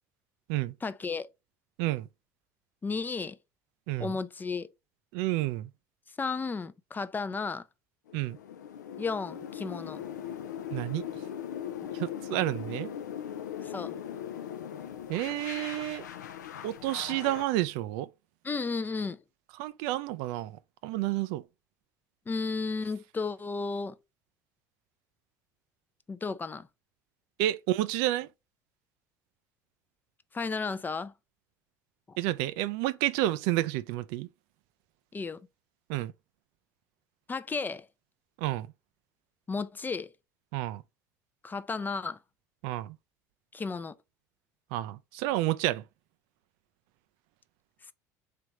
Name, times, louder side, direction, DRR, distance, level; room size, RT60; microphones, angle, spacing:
voice 1, 0.8-1.3 2.8-3.4 4.0-4.7 6.2-7.6 9.0-10.0 13.6-14.0 18.4-19.2 22.3-24.0 26.1-26.7 30.3-31.1 32.1-32.2 35.1-35.5 37.3-37.9 39.5-40.1 41.4-42.2 43.5-43.9, left 4 dB, 20° left, 0.4 m, -33 dB
voice 2, 5.1-5.7 8.1-8.4 10.7-11.0 11.9-12.9 15.1-16.0 16.6-18.1 19.6-20.6 20.8-21.4 27.4-28.3 32.2-34.3 35.9-36.1 38.4-38.7 40.5-40.8 42.6-43.0 44.7-45.8, right 15 dB, 65° right, 0.3 m, -30 dB
sound 1, 8.1-17.5, left 9 dB, 80° left, 0.4 m, -40 dB
3.3 x 3.0 x 4.7 m
hypercardioid pair, 65°, 9 cm